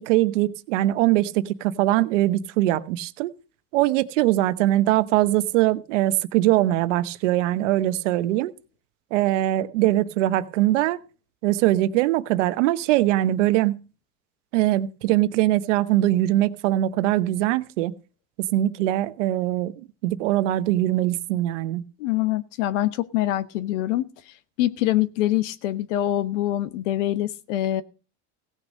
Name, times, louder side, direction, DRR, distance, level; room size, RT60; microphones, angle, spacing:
voice 1, 0.0-3.3 3.7-8.5 9.1-11.0 11.4-13.8 14.5-17.9 18.5-19.7 20.0-21.8, right 15 dB, 90° right, 1.0 m, -22 dB
voice 2, 22.0-24.1 24.6-27.8, left 14 dB, 90° left, 1.2 m, -24 dB
16.5 x 6.5 x 6.4 m
supercardioid pair, 105°, 35 cm